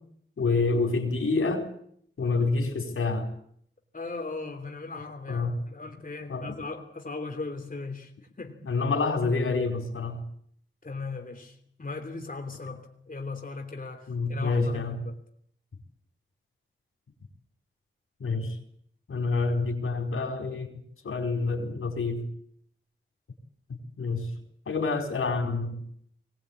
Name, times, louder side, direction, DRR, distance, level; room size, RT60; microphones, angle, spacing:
voice 1, 0.4-1.7 2.2-3.3 5.3-5.5 6.3-6.5 8.6-10.2 14.1-15.0 18.2-18.6 19.1-20.7 21.0-22.2 24.0-24.3 24.7-25.8, left 3 dB, 85° left, 3 dB, 4.5 m, -27 dB
voice 2, 3.9-8.1 8.4-8.6 10.8-15.2, left 3 dB, 40° left, 3 dB, 3.1 m, -38 dB
21.5 x 19.0 x 8.7 m, 0.67 s
wide cardioid pair, 60°, 21 cm